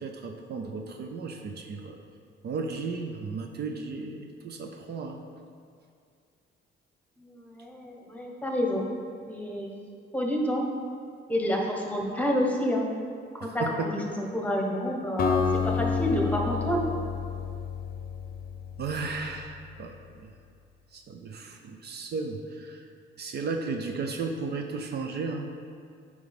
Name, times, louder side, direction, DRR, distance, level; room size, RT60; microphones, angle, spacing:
voice 1, 0.0-2.0 2.4-5.2 13.4-13.9 18.8-20.4 20.9-22.9 23.2-25.5, right 4 dB, 55° right, 4 dB, 0.6 m, -34 dB
voice 2, 7.2-8.9 9.2-9.7 10.1-10.6 11.3-12.9 13.4-16.8, equal, 5° left, 0 dB, 1.2 m, -29 dB
Acoustic guitar, 15.2-19.3, left 5 dB, 50° left, 0.7 m, -29 dB
8.8 x 4.9 x 3.6 m, 2.3 s
cardioid pair, 90°, 20 cm